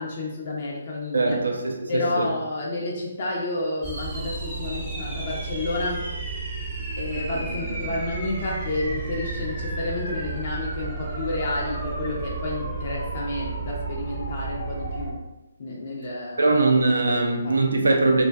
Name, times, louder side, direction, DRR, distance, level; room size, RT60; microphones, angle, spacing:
voice 1, 0.0-1.4 1.9-6.1 7.0-15.2 15.6-16.6 16.9-17.2 17.4-17.6, left 2 dB, 45° left, 0.4 m, -30 dB
voice 2, 1.1-2.3 16.4-18.2, right 2 dB, 75° right, 0.4 m, -21 dB
sound 1, 3.8-15.1, right 3 dB, 15° right, 0.6 m, -32 dB
2.4 x 2.2 x 2.2 m
figure-of-eight pair, 140°, 0 cm